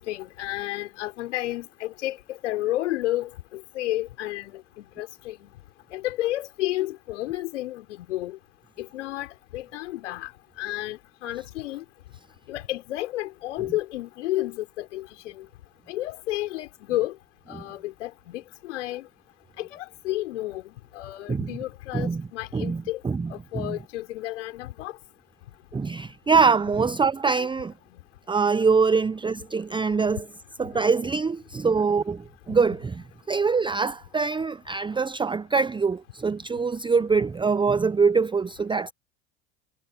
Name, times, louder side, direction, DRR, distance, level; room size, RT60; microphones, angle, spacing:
voice 1, 0.0-5.5 5.9-8.4 8.8-11.8 12.5-15.5 15.9-17.2 17.5-19.1 19.6-23.0 23.3-25.0 27.9-28.0 28.9-29.0 30.7-31.1, left 16 dB, 70° left, 4.5 m, -32 dB
voice 2, 22.5-23.3 25.7-27.7 28.3-30.3 30.6-38.9, right 5 dB, 15° right, 0.9 m, -24 dB
hypercardioid pair, 75°, 37 cm